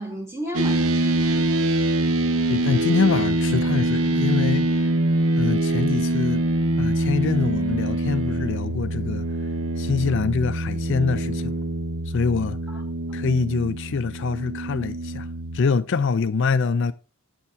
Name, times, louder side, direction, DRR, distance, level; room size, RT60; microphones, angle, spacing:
voice 1, 0.0-1.6 10.1-10.3 12.7-12.8 13.1-13.2, equal, 10° right, 2.3 m, -35 dB
sound 1, 0.5-15.6, right 1 dB, 85° right, 1.0 m, -24 dB
voice 2, 2.5-4.9 5.4-6.4 6.8-9.5 9.8-11.6 12.1-12.6 13.1-16.9, left 4 dB, 55° left, 0.5 m, -24 dB
8.0 x 7.2 x 4.6 m
head